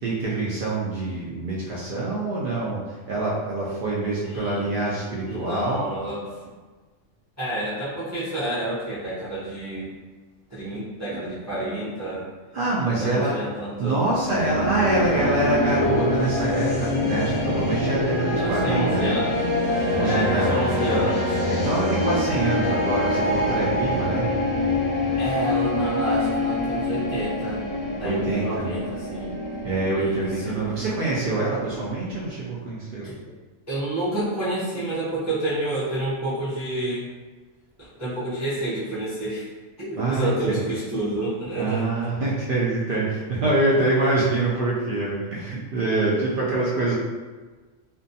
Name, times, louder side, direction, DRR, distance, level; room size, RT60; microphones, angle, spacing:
voice 1, 0.0-5.8 12.5-13.4 13.8-19.2 19.9-21.0 21.5-24.3 28.0-28.6 29.6-33.1 40.0-40.6 41.5-46.9, right 2 dB, 70° right, -6 dB, 0.5 m, -25 dB
voice 2, 4.2-4.7 5.3-6.4 7.4-9.9 10.5-12.3 13.0-14.0 18.4-19.3 20.0-21.4 25.2-27.7 28.0-29.3 29.9-30.7 33.0-33.2 33.7-37.1 37.8-39.5 39.8-42.1, right 1 dB, 20° right, -10 dB, 0.5 m, -29 dB
sound 1, 14.1-32.3, left 1 dB, 40° left, 0.5 m, -25 dB
2.5 x 2.2 x 2.6 m, 1.3 s
omnidirectional pair, 1.4 m